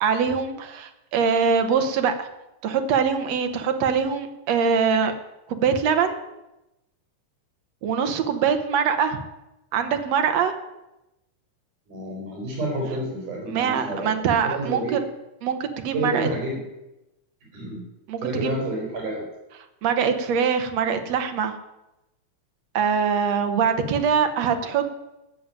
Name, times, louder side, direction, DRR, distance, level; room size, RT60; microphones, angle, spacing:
voice 1, 0.0-2.3 2.6-5.2 5.5-6.2 7.8-9.2 9.7-10.5 13.5-15.0 15.4-16.3 18.1-18.6 19.8-21.6 22.7-24.8, right 6 dB, 65° right, 7 dB, 2.2 m, -23 dB
voice 2, 11.9-14.2 14.4-15.0 15.9-16.6 17.5-17.8 18.2-19.2, right 1 dB, 80° right, 0 dB, 5.5 m, -29 dB
15.0 x 6.9 x 9.0 m, 0.94 s
omnidirectional pair, 3.6 m